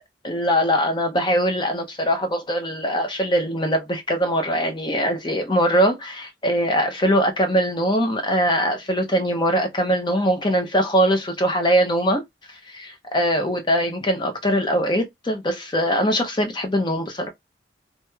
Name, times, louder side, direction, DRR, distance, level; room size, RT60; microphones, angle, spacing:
voice 1, 0.2-12.2 12.5-17.3, equal, 25° left, 0.6 m, -22 dB
2.9 x 2.8 x 2.2 m
head